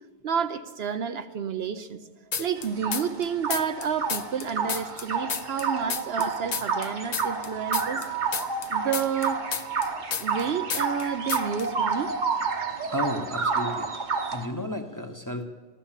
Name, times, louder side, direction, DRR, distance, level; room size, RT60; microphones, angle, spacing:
voice 1, 0.2-2.0 2.4-8.0 8.7-9.4 10.2-12.1, right 7 dB, 65° right, 10 dB, 0.9 m, -30 dB
sound 1, 2.3-3.2 3.5-6.3 6.5-10.4 10.7-11.0 11.3-11.7, left 7 dB, 45° left, 0.7 m, -31 dB
sound 2, 2.6-14.5, right 5 dB, 45° right, 1.1 m, -30 dB
voice 2, 12.9-14.0 14.3-15.4, left 1 dB, 20° left, 4 dB, 0.9 m, -32 dB
15.0 x 11.5 x 7.3 m, 1.3 s
omnidirectional pair, 1.2 m